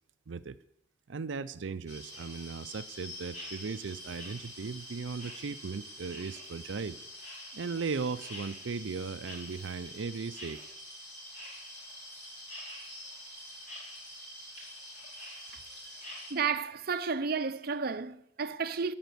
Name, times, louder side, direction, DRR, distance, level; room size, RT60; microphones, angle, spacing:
voice 1, 0.3-0.6 1.1-7.0 7.5-10.6, right 5 dB, 90° right, 0.5 m, -37 dB
sound 1, 1.9-16.3, left 1 dB, 40° left, 4.7 m, -46 dB
voice 2, 16.3-18.9, right 5 dB, 55° right, 0.7 m, -32 dB
17.0 x 9.5 x 6.8 m
head